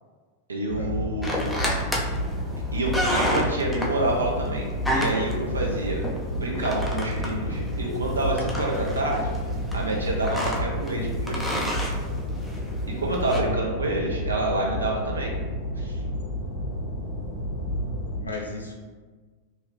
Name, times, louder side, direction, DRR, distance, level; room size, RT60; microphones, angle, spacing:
voice 1, 0.5-1.5 2.7-4.7 4.9-6.0 6.3-9.3 9.7-11.8 12.9-15.3 15.8-16.0, right 1 dB, 75° right, -2 dB, 0.6 m, -28 dB
sound 1, 0.7-18.2, equal, 55° left, 0.9 m, -30 dB
sound 2, 1.2-13.4, equal, 5° left, 0.5 m, -32 dB
voice 2, 18.2-18.8, left 2 dB, 80° left, -1 dB, 0.6 m, -34 dB
2.8 x 2.4 x 3.2 m, 1.4 s
figure-of-eight pair, 90°, 0 cm